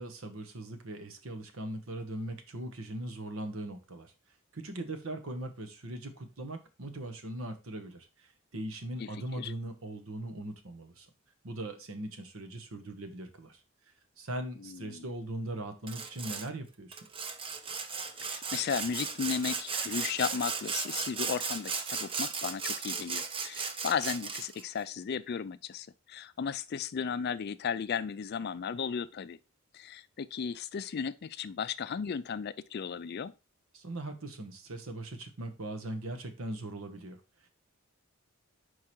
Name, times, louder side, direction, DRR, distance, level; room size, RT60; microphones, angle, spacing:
voice 1, 0.0-4.1 4.5-11.1 11.4-13.6 14.2-17.0 33.7-37.5, right 1 dB, 80° right, 1.1 m, -40 dB
voice 2, 9.0-9.5 14.6-15.0 18.2-29.4 29.7-33.3, left 6 dB, 50° left, 0.4 m, -35 dB
Sawing, 15.9-16.5 16.9-24.6, right 5 dB, 25° right, 0.5 m, -36 dB
4.8 x 4.7 x 4.4 m
head